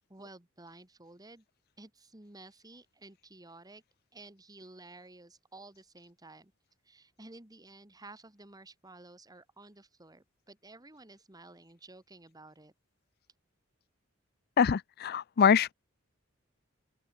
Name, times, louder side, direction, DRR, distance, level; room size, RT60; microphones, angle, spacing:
voice 1, 0.1-1.5 1.8-3.8 4.1-6.5 6.8-12.7, right 2 dB, 20° right, 1.9 m, -53 dB
voice 2, 14.6-15.7, left 7 dB, 50° left, 0.4 m, -24 dB
open air
head